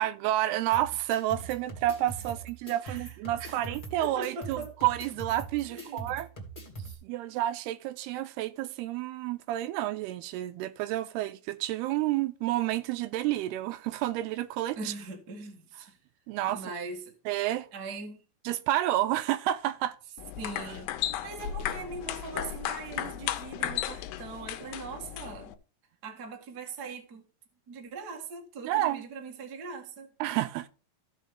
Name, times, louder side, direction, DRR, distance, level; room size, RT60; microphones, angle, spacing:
voice 1, 0.0-6.3 7.0-14.9 16.3-16.7 17.3-17.7 18.5-20.0 28.6-29.0 30.2-30.7, right 14 dB, 80° right, 2.5 m, -30 dB
sound 1, 0.7-6.9, right 4 dB, 15° left, 2.0 m, -42 dB
voice 2, 2.8-3.6 4.0-4.7 5.6-6.1 6.8-7.0 14.7-16.0 16.5-17.1 17.7-18.2 20.4-20.9 21.2-25.6 26.0-27.2 27.7-30.1, right 4 dB, 60° right, 1.0 m, -41 dB
sound 2, 20.2-25.5, left 11 dB, 80° left, 2.8 m, -35 dB
15.0 x 5.5 x 3.6 m
omnidirectional pair, 4.8 m